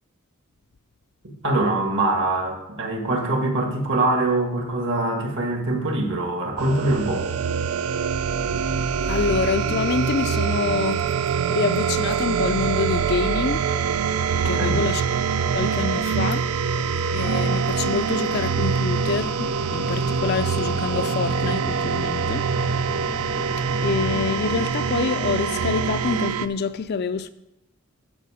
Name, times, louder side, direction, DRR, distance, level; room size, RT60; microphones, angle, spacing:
voice 1, 1.4-7.3 14.4-14.8, right 2 dB, 55° right, 1.9 m, -23 dB
sound 1, 6.6-26.5, right 6 dB, 80° right, 0.5 m, -24 dB
voice 2, 9.1-13.6 14.4-15.0 15.5-22.4 23.8-27.3, left 5 dB, 50° left, 0.4 m, -26 dB
sound 2, 18.9-24.7, equal, 5° right, 0.5 m, -37 dB
13.5 x 5.3 x 5.0 m
head